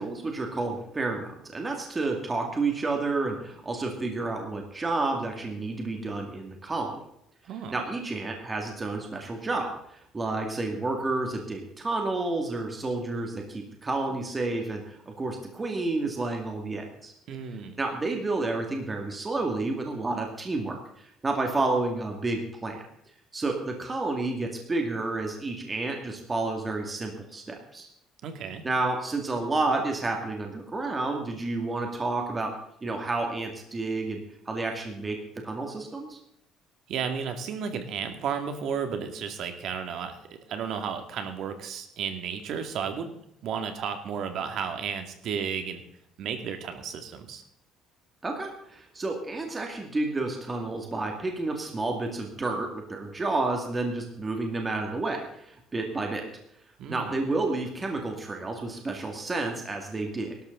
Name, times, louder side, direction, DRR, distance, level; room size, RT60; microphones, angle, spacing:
voice 1, 0.0-7.0 7.7-17.1 17.8-22.8 23.3-27.9 28.6-32.5 32.8-34.2 34.5-35.2 35.4-36.2 48.2-56.2 56.9-60.3, right 3 dB, 15° right, 2 dB, 2.2 m, -30 dB
voice 2, 7.4-7.8 17.3-17.8 28.2-28.6 36.9-40.2 40.5-43.1 43.4-45.8 46.2-47.4 56.8-57.2, right 7 dB, 50° right, 7 dB, 2.3 m, -33 dB
18.5 x 12.5 x 3.9 m, 0.73 s
cardioid pair, 165°, 0 cm